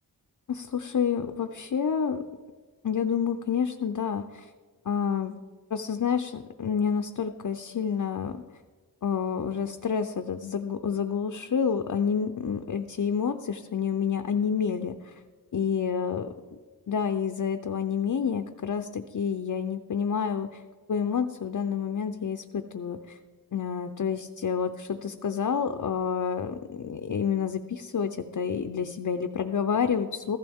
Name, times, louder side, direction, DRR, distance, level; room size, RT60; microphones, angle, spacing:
voice 1, 0.5-2.2 2.8-4.5 4.9-5.4 5.7-8.4 9.0-15.2 15.5-16.3 16.9-20.6 20.9-23.2 23.5-30.4, left 7 dB, 50° left, 6 dB, 0.6 m, -29 dB
15.0 x 15.0 x 3.6 m, 1.4 s
wide cardioid pair, 100°, 40 cm